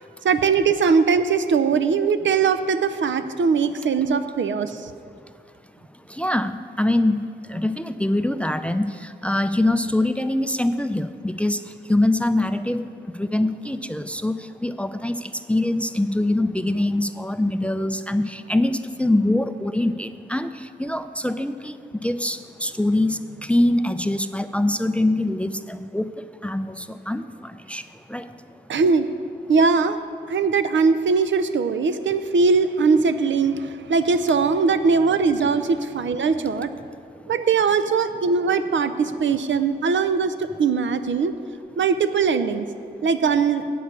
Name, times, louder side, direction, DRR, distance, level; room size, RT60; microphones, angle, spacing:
voice 1, 0.2-4.9 28.7-29.1 29.5-30.0 30.3-36.7 37.3-41.3 41.8-42.7 43.0-43.6, right 5 dB, 80° right, 11 dB, 0.5 m, -20 dB
voice 2, 6.1-11.6 11.9-12.8 13.1-21.8 22.0-26.1 26.4-27.8 28.1-28.3, left 1 dB, 5° left, 11 dB, 0.3 m, -24 dB
8.3 x 6.5 x 8.1 m, 2.3 s
wide cardioid pair, 90°, 19 cm